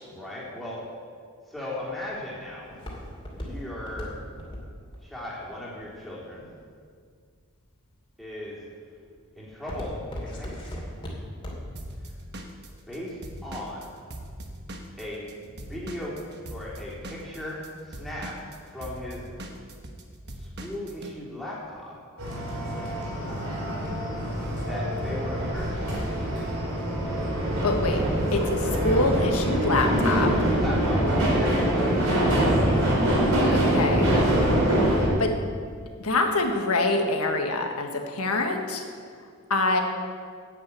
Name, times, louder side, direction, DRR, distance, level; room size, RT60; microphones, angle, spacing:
voice 1, 0.1-0.8 1.5-2.7 3.3-4.1 5.0-6.5 8.2-8.6 9.3-10.9 12.9-14.0 15.0-16.1 16.5-18.3 18.7-19.2 20.4-21.9 24.6-26.4 29.8-32.8, left 1 dB, ahead, -7 dB, 3.4 m, -37 dB
Walk footsteps, 1.6-6.7 7.3-7.8 8.3-8.6 9.0-11.8 12.2-12.3, equal, 25° left, 2.6 m, -37 dB
Drum kit / Drum, 11.8-15.3 15.6-21.1, right 1 dB, 50° right, 1.3 m, -40 dB
sound 1, 22.2-35.1, right 1 dB, 75° right, 4.1 m, -24 dB
voice 2, 27.6-28.0 28.3-30.3 33.5-34.1 35.2-35.3 36.0-38.8 39.5-39.8, left 2 dB, 85° left, 4 dB, 1.5 m, -25 dB
10.5 x 8.9 x 8.4 m, 2.1 s
head